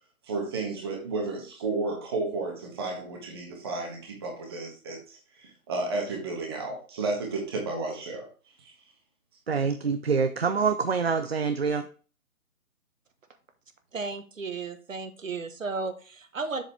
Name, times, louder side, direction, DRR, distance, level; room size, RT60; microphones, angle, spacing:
voice 1, 0.2-8.3 8.6-8.7, right 3 dB, 15° right, 1 dB, 1.5 m, -32 dB
voice 2, 9.5-11.9, right 5 dB, 45° right, 9 dB, 0.5 m, -26 dB
voice 3, 13.9-16.6, right 4 dB, 60° right, 7 dB, 1.5 m, -34 dB
7.3 x 6.7 x 3.4 m, 0.38 s
hypercardioid pair, 170°, 43 cm